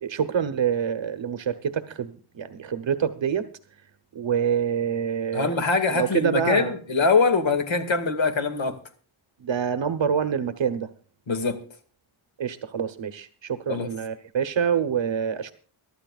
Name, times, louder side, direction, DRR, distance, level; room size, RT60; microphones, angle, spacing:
voice 1, 0.0-3.5 4.1-5.6 5.9-6.7 9.4-10.9 12.4-15.5, right 7 dB, 65° right, 1.1 m, -26 dB
voice 2, 5.3-8.8 11.3-11.6 13.7-13.9, left 4 dB, 70° left, 2.2 m, -23 dB
23.5 x 13.0 x 2.4 m
wide cardioid pair, 170°, 48 cm